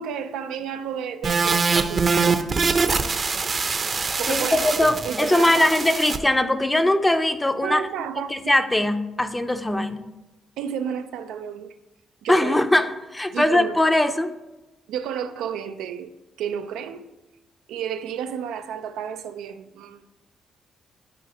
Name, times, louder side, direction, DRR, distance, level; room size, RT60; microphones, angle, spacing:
voice 1, 0.0-2.4 4.2-5.7 7.6-8.6 10.6-11.7 12.2-12.6 13.3-14.0 14.9-16.1 16.4-17.1 17.7-20.0, right 8 dB, 90° right, 0.5 m, -31 dB
sound 1, 1.2-6.2, right 4 dB, 40° right, 0.7 m, -23 dB
voice 2, 4.3-7.8 8.3-10.1 12.3-14.3, left 1 dB, 10° left, 0.6 m, -21 dB
12.5 x 4.8 x 3.0 m
cardioid pair, 90°, 0 cm